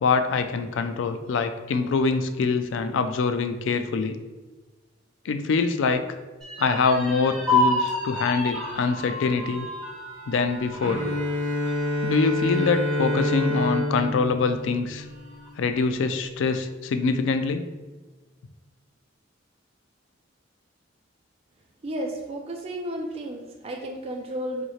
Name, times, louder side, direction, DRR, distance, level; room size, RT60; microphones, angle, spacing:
voice 1, 0.0-4.2 5.2-6.0 6.6-9.7 10.3-11.0 12.0-15.1 15.6-17.6, left 4 dB, 70° left, 9 dB, 0.3 m, -24 dB
sound 1, 6.4-14.1 14.5-14.6 15.0-15.7, left 2 dB, ahead, 1.5 m, -31 dB
Bowed string instrument, 10.8-15.6, left 1 dB, 80° right, 0.9 m, -27 dB
voice 2, 21.8-24.6, right 1 dB, 30° right, 1 dB, 0.3 m, -32 dB
4.2 x 2.7 x 3.0 m, 1.2 s
head